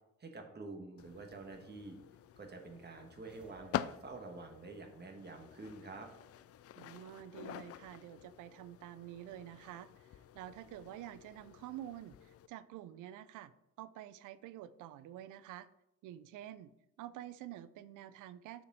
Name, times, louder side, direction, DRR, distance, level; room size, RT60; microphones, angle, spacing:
voice 1, 0.2-2.0 2.4-6.1, right 3 dB, 35° right, 3 dB, 1.7 m, -48 dB
sound 1, 1.0-12.5, left 11 dB, 50° left, 0.4 m, -47 dB
sound 2, 3.2-4.8, equal, 5° right, 1.3 m, -61 dB
voice 2, 6.8-13.5 13.8-15.7 16.0-16.7 17.0-18.6, right 12 dB, 90° right, 16 dB, 0.5 m, -48 dB
6.5 x 5.1 x 6.2 m, 0.85 s
cardioid pair, 90°, 30 cm